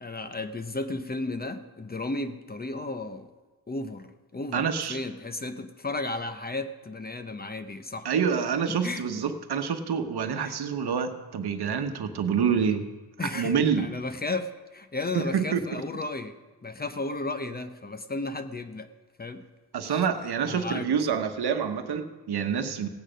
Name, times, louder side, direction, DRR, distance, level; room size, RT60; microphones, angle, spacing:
voice 1, 0.0-3.3 3.7-8.1 8.7-9.2 10.4-10.6 13.2-16.4 16.6-18.9 19.2-19.4 19.9-20.1 20.4-21.2, left 2 dB, 25° left, 9 dB, 0.7 m, -34 dB
voice 2, 4.5-5.0 8.0-12.9 13.2-13.8 15.1-15.6 19.7-22.9, right 7 dB, 75° right, 7 dB, 1.1 m, -27 dB
17.0 x 8.9 x 5.1 m, 1.2 s
wide cardioid pair, 115°, 39 cm